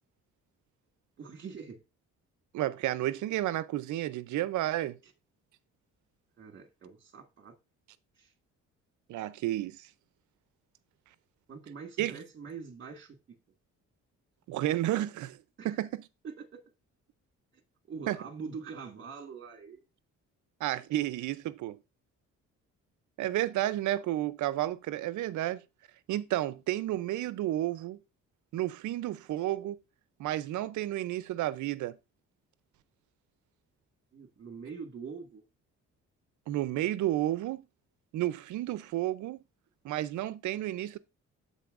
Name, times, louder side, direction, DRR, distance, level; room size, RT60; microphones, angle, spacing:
voice 1, 1.2-1.8 6.4-7.5 8.2-8.3 11.5-13.4 15.6-15.8 16.2-16.4 17.9-19.8 34.1-35.4, right 5 dB, 40° right, 1.6 m, -44 dB
voice 2, 2.5-5.0 9.1-9.9 12.0-12.1 14.5-15.4 15.6-16.1 18.1-18.2 20.6-21.8 23.2-25.6 26.1-28.0 28.5-29.8 30.2-32.0 36.5-37.6 38.1-39.4 39.8-41.0, right 14 dB, 75° right, 0.6 m, -31 dB
11.5 x 4.2 x 2.5 m
cardioid pair, 90°, 30 cm